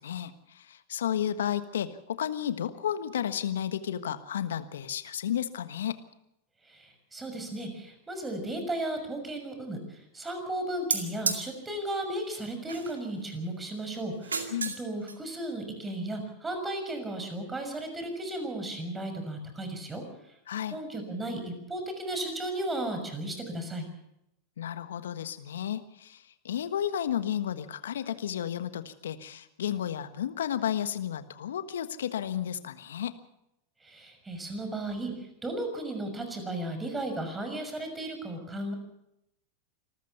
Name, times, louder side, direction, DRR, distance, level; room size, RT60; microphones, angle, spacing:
voice 1, 0.0-5.9 14.5-14.7 20.5-20.8 24.6-33.1, left 10 dB, 75° left, 11 dB, 1.4 m, -32 dB
voice 2, 6.7-20.0 20.7-23.8 33.8-35.1 35.4-38.7, right 1 dB, 15° right, 6 dB, 6.3 m, -35 dB
sound 1, 10.9-11.4 12.7-13.1 14.1-14.8 15.1-15.2, right 5 dB, 85° right, 2.2 m, -31 dB
26.5 x 14.5 x 7.0 m, 0.84 s
hypercardioid pair, 95°, 0 cm